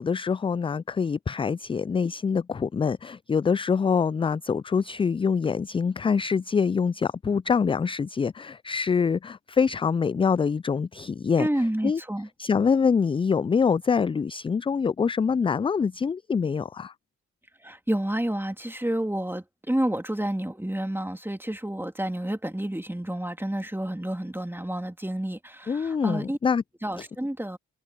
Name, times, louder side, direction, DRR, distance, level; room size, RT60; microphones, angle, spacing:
voice 1, 0.0-12.0 12.4-16.9 25.7-26.6 27.0-27.1, left 6 dB, 15° left, 0.3 m, -25 dB
voice 2, 11.4-12.3 17.6-26.4 26.8-27.6, right 1 dB, 5° right, 2.9 m, -29 dB
hypercardioid pair, 40°, 38 cm